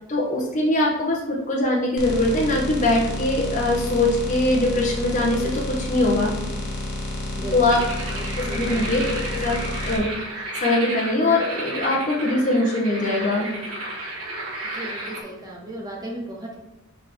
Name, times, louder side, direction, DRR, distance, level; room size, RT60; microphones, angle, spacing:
voice 1, 0.1-6.3 7.5-7.8 8.2-9.6 9.9-13.5, left 2 dB, 35° left, -3 dB, 1.1 m, -22 dB
sound 1, 2.0-10.0, left 1 dB, 55° left, 1.5 m, -30 dB
voice 2, 7.4-9.0 14.7-16.6, right 1 dB, 20° right, -4 dB, 1.4 m, -36 dB
sound 2, 7.7-15.2, right 1 dB, 80° right, 1.4 m, -32 dB
4.9 x 4.9 x 4.4 m, 1.0 s
head